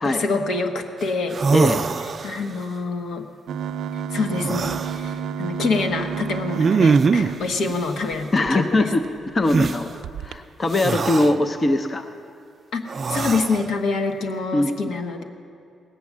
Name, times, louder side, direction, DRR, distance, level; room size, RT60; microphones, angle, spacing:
voice 1, 0.0-1.5 2.2-3.3 3.9-8.9 12.7-12.8 13.1-15.2, left 4 dB, 75° left, 6 dB, 1.2 m, -26 dB
sound 1, 1.0-1.1 1.3-2.6 4.4-5.0 6.6-7.4 9.5-9.8 10.7-11.3 12.9-13.7, right 5 dB, 35° right, 0.4 m, -22 dB
voice 2, 1.5-1.8 8.3-9.0 9.3-9.9 10.2-12.1 14.5-14.7, left 2 dB, 30° left, 7 dB, 0.6 m, -21 dB
sound 2, 3.5-8.5 9.0-9.1 9.4-9.6 10.0-10.4, right 7 dB, 90° right, 0.5 m, -31 dB
18.0 x 8.6 x 7.3 m, 2.4 s
cardioid pair, 145°, 0 cm